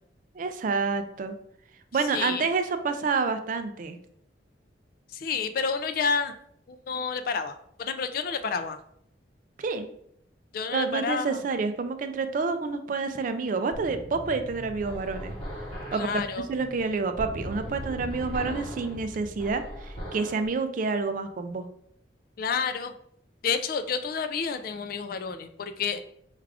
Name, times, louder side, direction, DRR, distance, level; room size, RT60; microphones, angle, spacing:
voice 1, 0.4-1.3 1.9-4.0 9.6-9.9 10.7-15.3 15.9-16.2 16.5-21.7, right 4 dB, 45° right, 8 dB, 0.3 m, -28 dB
voice 2, 2.1-2.5 5.1-6.3 6.7-8.8 10.5-11.4 15.9-16.5 22.4-22.9 23.4-26.0, left 5 dB, 50° left, 9 dB, 0.3 m, -30 dB
sound 1, 13.7-20.5, equal, 35° left, 1.2 m, -39 dB
4.7 x 2.4 x 3.4 m, 0.71 s
head